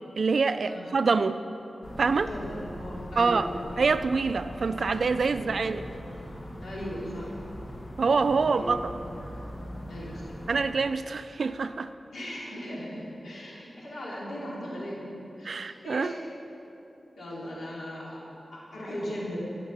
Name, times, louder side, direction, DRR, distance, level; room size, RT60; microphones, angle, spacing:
voice 1, 0.2-1.4 2.0-2.3 3.2-3.5 3.8-5.8 8.0-8.8 10.5-11.9 15.4-16.1, right 4 dB, 70° right, 12 dB, 0.4 m, -25 dB
sound 1, 1.8-10.7, equal, 35° left, 1.4 m, -41 dB
voice 2, 2.3-3.6 5.3-5.5 6.6-7.3 8.4-8.7 9.8-10.4 12.1-16.1 17.2-18.2 18.5-19.4, equal, 90° left, -6 dB, 3.1 m, -38 dB
17.0 x 5.9 x 5.5 m, 2.9 s
wide cardioid pair, 90°, 0 cm